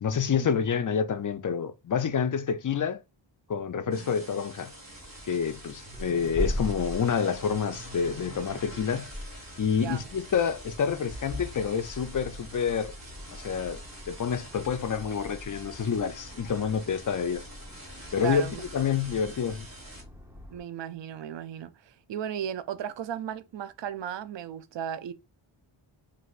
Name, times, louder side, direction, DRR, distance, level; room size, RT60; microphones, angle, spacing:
voice 1, 0.0-3.0 3.5-4.7 5.3-9.1 9.6-12.9 13.3-13.8 14.1-17.4 18.1-19.7, left 7 dB, 40° left, 0.4 m, -28 dB
sound 1, 3.9-20.0, right 1 dB, 30° right, 1.7 m, -47 dB
voice 2, 3.9-4.2 9.7-10.1 18.2-18.6 20.5-25.1, right 9 dB, 60° right, 0.5 m, -36 dB
Accelerating revving vroom, 4.9-20.6, left 1 dB, 5° right, 0.7 m, -41 dB
3.3 x 2.6 x 2.4 m
wide cardioid pair, 80°, 50 cm